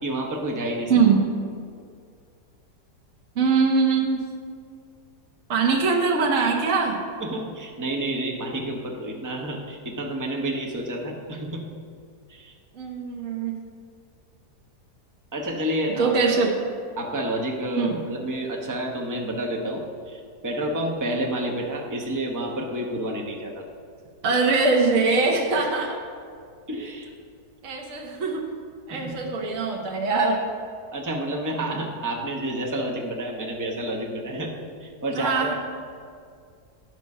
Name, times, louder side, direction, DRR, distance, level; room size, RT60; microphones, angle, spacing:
voice 1, 0.0-0.9 7.2-11.7 12.3-12.5 15.3-16.1 17.0-23.6 26.7-27.1 28.9-29.3 30.9-34.5 34.8-35.5, right 1 dB, 15° right, 0 dB, 0.8 m, -29 dB
voice 2, 0.9-1.2 3.3-4.2 5.5-7.0 12.7-13.6 16.0-16.5 17.8-18.0 24.2-26.0 27.6-28.5 28.9-30.4 35.1-35.5, right 4 dB, 55° right, 0 dB, 1.3 m, -22 dB
10.0 x 6.2 x 5.4 m, 2.2 s
omnidirectional pair, 1.7 m